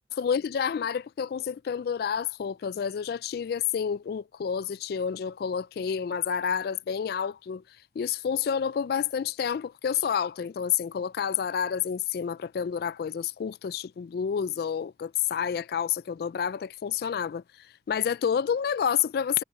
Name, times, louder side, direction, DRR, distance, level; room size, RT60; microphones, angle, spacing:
voice 1, 0.1-7.6 8.0-19.4, left 7 dB, 60° left, 0.3 m, -29 dB
head